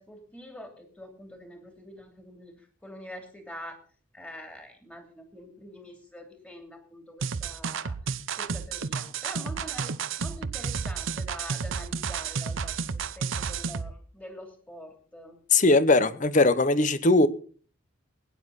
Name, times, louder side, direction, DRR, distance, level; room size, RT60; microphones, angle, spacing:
voice 1, 0.0-3.8 4.1-8.0 8.4-12.7 13.1-15.4, equal, 5° left, 2.9 m, -45 dB
sound 1, 7.2-13.9, right 5 dB, 70° right, 0.7 m, -31 dB
voice 2, 15.5-17.3, left 2 dB, 40° left, 0.9 m, -20 dB
20.5 x 9.7 x 4.0 m
head